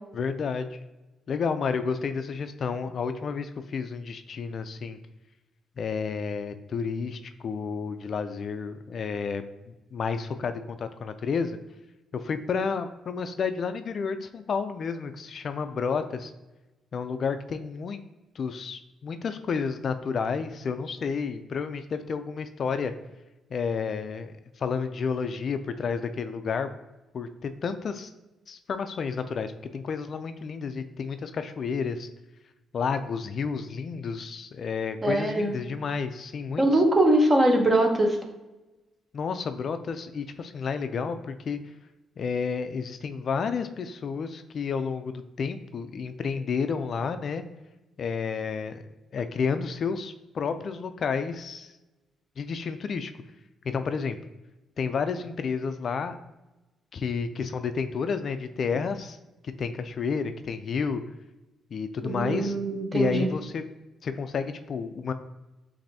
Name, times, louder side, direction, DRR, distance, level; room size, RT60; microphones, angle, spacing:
voice 1, 0.1-0.8 1.3-5.0 5.8-11.6 12.1-16.3 16.9-18.0 18.4-22.9 23.5-26.7 27.1-28.1 28.5-32.1 32.7-36.8 39.1-41.6 42.2-47.4 48.0-48.8 49.1-51.7 52.4-53.1 53.6-54.2 54.8-56.2 56.9-59.2 59.4-61.0 61.7-62.6 62.9-63.6 64.0-65.1, left 5 dB, 55° left, 9 dB, 0.3 m, -31 dB
voice 2, 35.0-35.5 36.6-38.2 62.0-63.3, right 1 dB, 25° right, 3 dB, 0.9 m, -22 dB
7.3 x 2.6 x 2.7 m, 1.1 s
cardioid pair, 90°, 0 cm